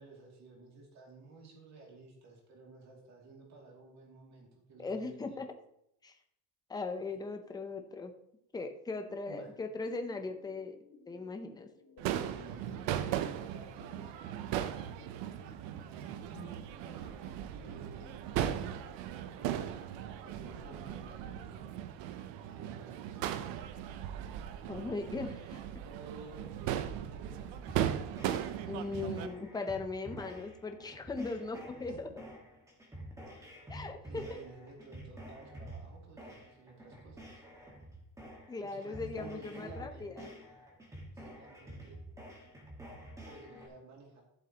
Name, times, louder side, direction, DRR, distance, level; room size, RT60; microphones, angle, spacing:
voice 1, 0.0-5.5 9.3-9.5 12.0-14.8 15.9-16.5 16.8-17.2 17.5-18.2 19.1-19.8 20.2-21.7 22.5-23.2 25.8-27.7 31.9-32.0 34.1-37.4 38.6-40.3 41.1-42.0 43.2-44.2, right 3 dB, 40° right, -1 dB, 2.6 m, -53 dB
voice 2, 4.8-5.5 6.0-6.2 6.7-8.1 8.5-10.8 11.1-11.7 24.7-25.6 28.7-32.1 33.7-34.4 38.5-40.3, left 3 dB, 10° left, 6 dB, 0.6 m, -39 dB
sound 1, 9.8-21.1, left 5 dB, 40° left, 1.6 m, -60 dB
Crowd / Fireworks, 12.0-29.3, right 10 dB, 80° right, 0.8 m, -38 dB
sound 2, 27.7-43.7, right 1 dB, 5° right, 1.6 m, -49 dB
14.0 x 7.4 x 2.9 m, 0.77 s
cardioid pair, 170°, 43 cm